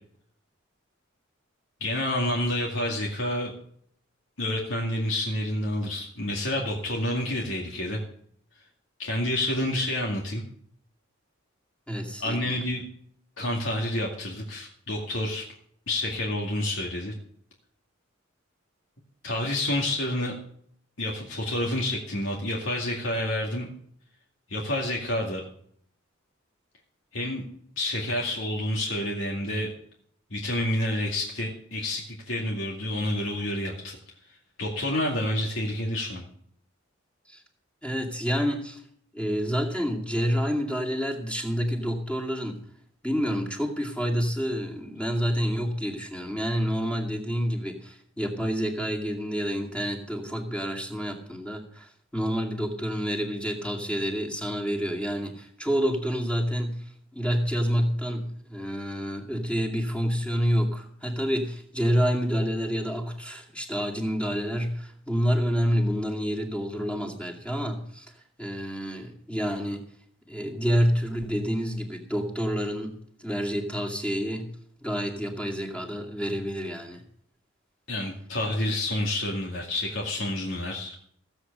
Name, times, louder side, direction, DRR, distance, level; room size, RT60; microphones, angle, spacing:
voice 1, 1.8-3.5 4.4-8.0 9.0-10.4 12.2-12.8 13.4-15.5 15.9-17.1 19.2-20.3 21.0-23.7 24.5-25.4 27.1-27.5 27.8-29.7 30.3-34.0 34.6-36.2 77.9-80.9, left 1 dB, 75° left, -1 dB, 2.3 m, -29 dB
voice 2, 11.9-12.6 37.3-37.4 37.8-38.8 39.1-42.6 43.0-56.8 57.1-68.1 68.4-69.8 70.3-74.5 74.8-77.0, equal, 5° left, 2 dB, 2.4 m, -28 dB
16.5 x 8.0 x 6.7 m, 0.64 s
head